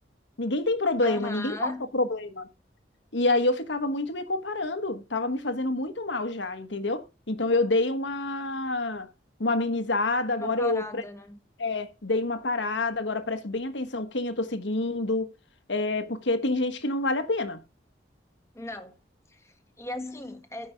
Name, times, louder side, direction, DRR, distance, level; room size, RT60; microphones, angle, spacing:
voice 1, 0.4-2.5 3.1-9.1 9.4-10.8 11.6-15.3 15.7-17.6, left 2 dB, 85° left, 1.5 m, -27 dB
voice 2, 1.0-1.8 10.4-11.4 18.5-18.9 19.3-20.7, left 1 dB, 15° left, 1.3 m, -37 dB
9.6 x 5.3 x 7.7 m
head